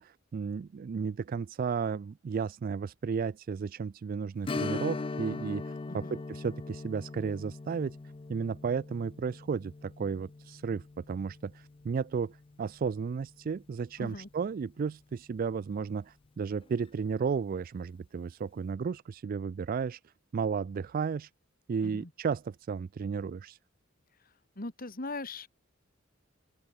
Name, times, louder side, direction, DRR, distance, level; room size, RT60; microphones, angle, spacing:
voice 1, 0.0-8.0 8.3-21.3 21.7-23.6, right 6 dB, 45° right, 0.3 m, -34 dB
Strum, 4.4-13.6 14.0-14.1 16.6-16.8 17.2-17.3, left 3 dB, 25° left, 0.4 m, -41 dB
voice 2, 5.9-6.2 14.0-14.3 21.8-22.1 24.6-25.5, left 2 dB, 45° left, 2.3 m, -40 dB
open air
head